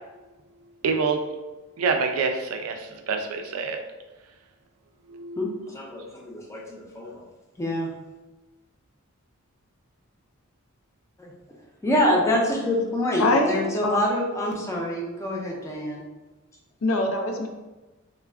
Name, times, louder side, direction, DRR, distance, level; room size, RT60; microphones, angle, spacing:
voice 1, 0.8-1.3 1.8-3.8 5.1-5.5, right 5 dB, 75° right, 5 dB, 0.4 m, -26 dB
voice 2, 5.4-7.2 7.6-7.9 11.2-11.3 11.8-16.0, left 1 dB, 15° left, -2 dB, 0.5 m, -26 dB
voice 3, 13.2-14.0 16.8-17.5, left 2 dB, 65° left, 3 dB, 0.4 m, -23 dB
2.3 x 2.1 x 3.4 m, 1.1 s
head